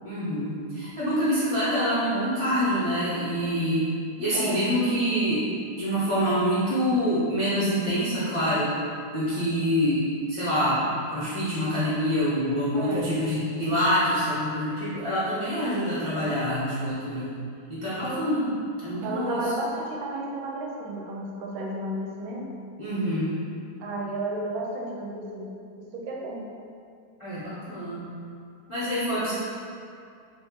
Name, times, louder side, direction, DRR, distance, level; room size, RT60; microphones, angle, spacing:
voice 1, 0.0-3.9 4.2-5.5 5.8-8.7 9.1-10.0 10.3-17.3 17.7-18.5 18.8-19.5 22.8-23.4 27.2-28.1 28.7-29.3, equal, 50° left, -12 dB, 0.3 m, -26 dB
voice 2, 12.7-13.2 18.0-18.3 19.0-22.5 23.8-25.5 25.8-26.5, right 1 dB, 70° right, -1 dB, 1.0 m, -32 dB
3.2 x 2.6 x 3.5 m, 2.3 s
omnidirectional pair, 1.8 m